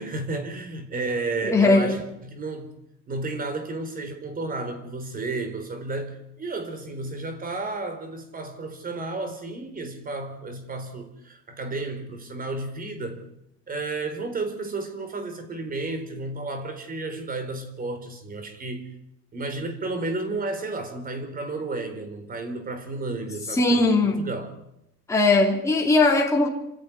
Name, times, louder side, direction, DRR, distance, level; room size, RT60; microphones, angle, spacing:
voice 1, 0.0-2.7 3.1-13.2 13.7-18.9 19.3-24.5, right 3 dB, 30° right, 8 dB, 3.9 m, -32 dB
voice 2, 1.4-2.0 23.5-24.2 25.1-26.5, left 3 dB, 10° left, -1 dB, 3.5 m, -19 dB
27.5 x 13.5 x 9.8 m, 0.82 s
cardioid pair, 145°, 29 cm